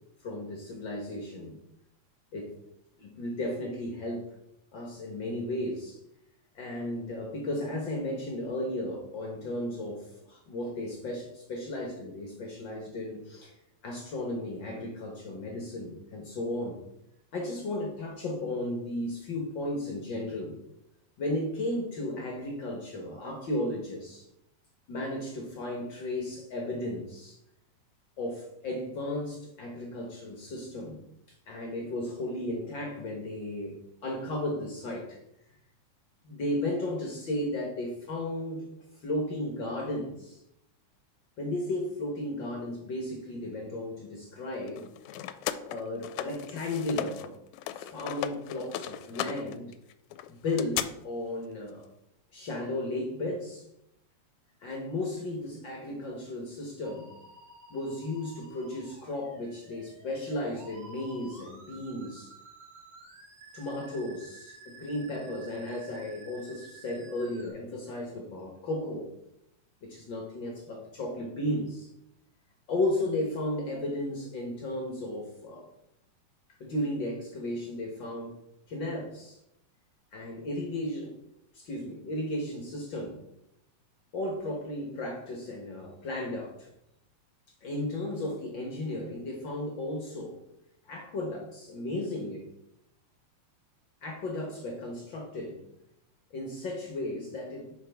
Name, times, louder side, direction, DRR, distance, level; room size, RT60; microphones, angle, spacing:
voice 1, 0.2-1.6 2.3-2.5 3.0-4.2 4.7-6.0 6.5-13.5 13.8-16.8 17.3-20.6 21.2-24.3 24.9-27.4 28.2-31.0 31.5-33.7 34.0-35.2 36.2-38.6 39.0-40.4 41.4-44.9 45.7-47.3 47.7-49.7 50.3-51.9 52.3-53.7 54.6-57.1 57.7-62.3 63.5-69.1 69.8-71.9 72.7-75.6 76.6-78.3 78.7-79.4 80.1-81.1 81.5-83.2 84.1-86.7 87.6-90.4 90.9-92.5 94.0-95.6 96.3-97.7, left 1 dB, 60° left, 1 dB, 1.3 m, -34 dB
sound 1, 44.7-47.3 47.5-50.9, left 12 dB, 80° left, 1.9 m, -36 dB
Musical instrument, 56.8-67.5, right 3 dB, 50° right, 3.4 m, -52 dB
9.5 x 5.7 x 3.4 m, 0.81 s
omnidirectional pair, 3.7 m